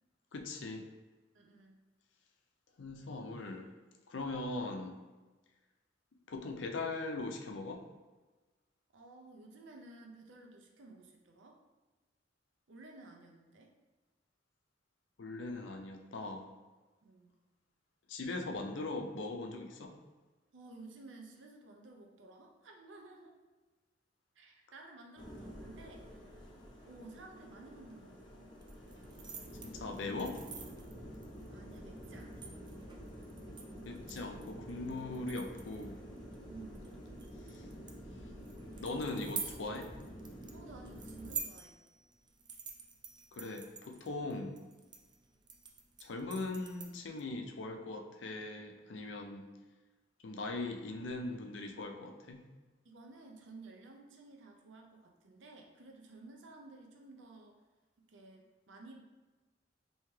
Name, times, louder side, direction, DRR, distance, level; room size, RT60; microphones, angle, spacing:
voice 1, 0.3-0.9 2.8-3.7 4.1-5.0 6.3-7.8 15.2-16.5 18.1-19.9 29.6-30.4 33.9-36.0 37.5-37.6 38.8-39.9 43.3-44.6 46.0-49.5 50.2-52.4, left 2 dB, 75° left, 4 dB, 0.5 m, -40 dB
voice 2, 1.3-1.8 8.9-11.6 12.7-13.7 17.0-17.3 20.5-23.4 24.4-26.4 26.8-28.5 31.5-32.5 36.5-37.0 40.5-41.8 44.3-44.4 52.8-57.6 58.0-59.0, right 2 dB, 80° right, 1 dB, 0.5 m, -54 dB
sound 1, 25.2-41.4, equal, 25° left, 0.7 m, -49 dB
sound 2, 28.6-47.2, right 6 dB, 25° right, 0.3 m, -49 dB
3.3 x 2.8 x 3.1 m, 1.2 s
head